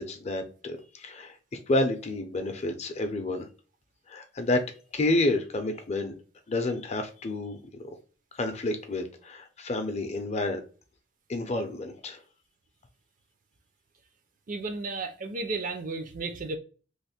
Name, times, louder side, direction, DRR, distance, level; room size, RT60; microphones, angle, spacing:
voice 1, 0.0-1.4 1.7-3.5 4.1-4.7 4.9-6.1 6.5-7.6 8.4-10.6 11.3-12.2, left 2 dB, 35° left, 0.5 m, -29 dB
voice 2, 14.5-16.6, right 3 dB, 45° right, 0.5 m, -33 dB
3.1 x 2.1 x 4.2 m
head